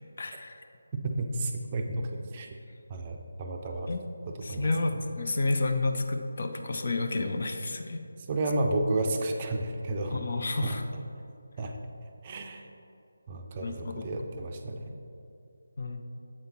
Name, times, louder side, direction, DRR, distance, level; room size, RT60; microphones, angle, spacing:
voice 1, 0.2-0.6 3.9-4.0 4.4-8.0 10.1-10.8 13.6-14.2 15.8-16.0, left 2 dB, 45° left, 5 dB, 0.5 m, -30 dB
voice 2, 0.9-2.5 2.9-3.9 4.5-5.0 8.3-10.2 10.6-10.8 11.6-11.8 12.2-12.6 13.3-14.9, right 2 dB, 25° right, 3 dB, 0.5 m, -32 dB
7.2 x 5.2 x 4.2 m, 2.6 s
figure-of-eight pair, 155°, 0 cm